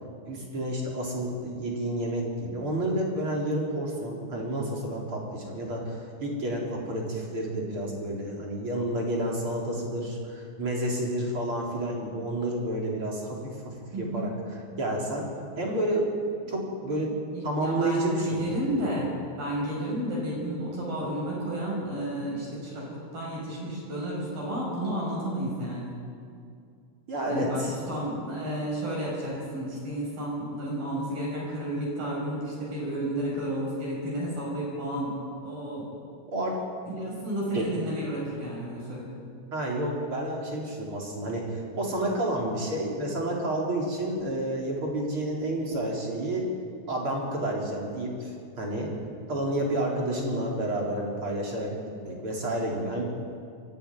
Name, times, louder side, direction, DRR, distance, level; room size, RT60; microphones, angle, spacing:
voice 1, 0.2-14.3 14.8-15.3 15.6-16.1 16.5-17.1 17.4-18.9 27.1-27.7 36.3-36.6 37.5-37.7 39.5-46.5 46.9-48.9 49.3-51.7 52.1-53.0, right 1 dB, 30° right, -2 dB, 4.2 m, -30 dB
voice 2, 13.9-14.3 16.4-16.5 17.1-26.0 27.3-35.1 35.4-35.9 36.8-39.2, right 1 dB, 60° right, -4 dB, 7.9 m, -32 dB
24.0 x 14.5 x 9.9 m, 2.3 s
omnidirectional pair, 4.7 m